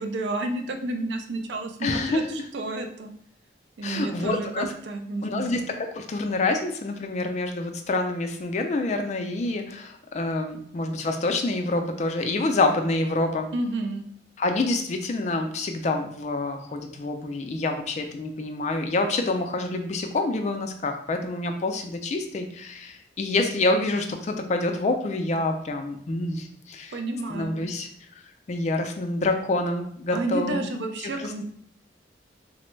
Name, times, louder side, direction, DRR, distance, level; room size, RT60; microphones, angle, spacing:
voice 1, 0.0-3.1 3.8-5.6 13.5-14.0 26.9-27.7 30.1-31.4, right 2 dB, 70° right, 5 dB, 0.4 m, -31 dB
voice 2, 1.8-2.4 3.8-4.7 5.2-13.5 14.4-27.0 27.3-28.2 28.5-30.7 31.2-31.4, left 2 dB, 40° left, 5 dB, 0.3 m, -27 dB
3.2 x 2.1 x 3.0 m, 0.64 s
head